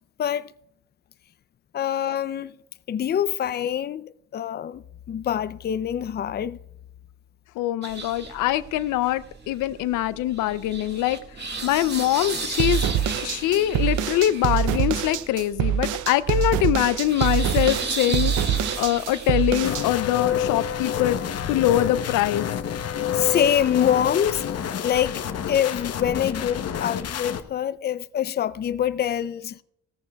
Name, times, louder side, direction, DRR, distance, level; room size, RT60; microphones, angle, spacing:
voice 1, 0.2-0.5 1.7-2.5 2.9-6.6 23.1-24.5 24.8-25.2 25.5-29.6, left 9 dB, 35° left, 0.4 m, -25 dB
voice 2, 7.6-11.2 11.6-12.9 13.2-22.5, left 14 dB, 90° left, 0.5 m, -23 dB
sound 1, 7.8-22.3, right 3 dB, 35° right, 1.9 m, -36 dB
sound 2, 12.6-19.8, right 9 dB, 80° right, 0.6 m, -24 dB
sound 3, 19.6-27.4, left 9 dB, 55° left, 0.9 m, -28 dB
17.5 x 14.0 x 2.3 m
cardioid pair, 90°, 30 cm